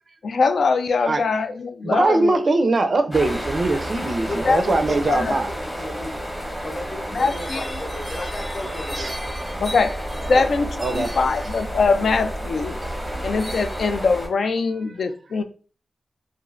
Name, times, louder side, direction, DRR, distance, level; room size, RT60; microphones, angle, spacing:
voice 1, 0.2-2.4 4.5-4.6 5.1-5.4 7.1-7.6 9.6-9.9 10.3-12.8 13.2-15.4, left 4 dB, 70° left, 8 dB, 0.3 m, -22 dB
voice 2, 1.8-5.5 9.0-9.1 10.3-10.5 10.8-11.2, right 2 dB, 45° right, 8 dB, 0.4 m, -21 dB
sound 1, 3.1-14.3, equal, ahead, 0.7 m, -30 dB
voice 3, 4.2-6.2 6.6-9.2, left 1 dB, 55° left, -3 dB, 0.8 m, -34 dB
3.0 x 2.4 x 2.4 m, 0.37 s
wide cardioid pair, 175°, 0 cm